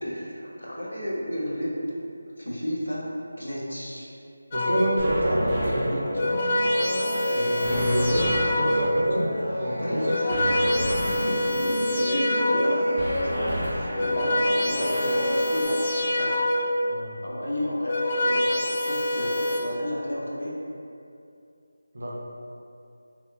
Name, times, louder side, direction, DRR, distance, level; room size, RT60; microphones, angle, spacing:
voice 1, 0.0-1.8 2.4-4.1 9.8-16.4 17.2-20.6, equal, 85° left, -5 dB, 0.6 m, -33 dB
sound 1, 4.5-5.1 5.9-9.1 9.8-13.0 13.7-16.9 17.6-19.6, left 1 dB, 30° left, 0.4 m, -26 dB
voice 2, 4.5-6.3 7.3-10.1 16.9-17.1 21.9-22.1, equal, 70° right, -3 dB, 0.5 m, -27 dB
sound 2, 5.0-15.7, equal, ahead, 0.7 m, -29 dB
sound 3, 11.4-12.6 12.9-16.6, equal, 50° left, 1.3 m, -38 dB
2.8 x 2.1 x 2.4 m, 2.6 s
figure-of-eight pair, 165°, 0 cm